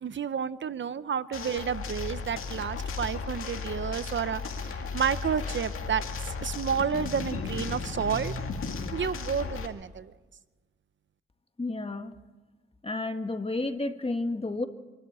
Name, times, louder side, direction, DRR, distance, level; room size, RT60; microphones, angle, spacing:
voice 1, 0.0-8.3 8.9-10.1, right 7 dB, 60° right, 15 dB, 0.7 m, -31 dB
sound 1, 1.3-9.7, left 4 dB, 85° left, 2.0 m, -35 dB
voice 2, 11.6-12.1 12.8-14.7, left 2 dB, 25° left, 8 dB, 1.6 m, -31 dB
26.5 x 12.5 x 8.8 m, 1.2 s
cardioid pair, 70°, 21 cm